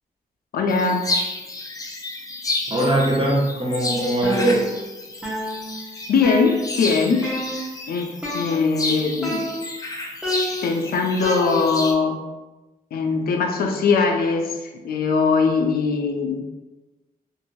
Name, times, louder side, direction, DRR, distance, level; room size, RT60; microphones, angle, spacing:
voice 1, 0.5-1.0 6.1-7.3 7.9-9.4 10.6-12.2 12.9-16.4, left 4 dB, 80° left, 4 dB, 0.4 m, -21 dB
sound 1, 0.7-11.9, left 2 dB, 25° left, 0.4 m, -31 dB
voice 2, 2.7-4.7, right 1 dB, 35° right, -3 dB, 0.8 m, -21 dB
sound 2, 4.2-4.9 5.2-6.9 7.2-7.8 8.2-8.9 9.2-9.9 10.2-11.9, equal, 5° right, 0.9 m, -30 dB
2.7 x 2.5 x 2.9 m, 1.1 s
wide cardioid pair, 115°, 15 cm